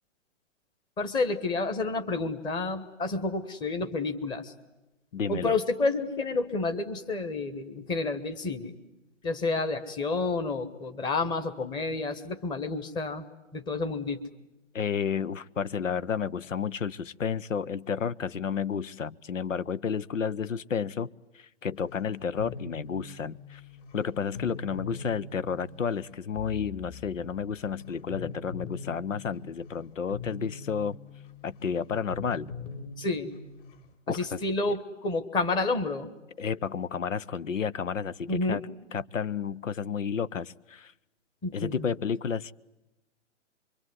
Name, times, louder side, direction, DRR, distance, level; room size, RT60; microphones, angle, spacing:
voice 1, 1.0-4.5 5.3-8.7 9.2-13.2 13.5-14.2 33.0-33.3 34.1-36.1 38.3-38.6 41.4-41.8, left 3 dB, 10° left, 9 dB, 1.2 m, -30 dB
voice 2, 5.1-5.6 14.7-23.6 23.9-31.0 31.4-32.5 34.1-34.4 36.4-38.7 38.9-40.9 41.5-42.5, left 7 dB, 85° left, 19 dB, 0.9 m, -31 dB
sound 1, 21.7-33.9, left 4 dB, 40° left, 4.5 m, -43 dB
25.5 x 23.5 x 9.6 m, 0.96 s
hypercardioid pair, 145°, 37 cm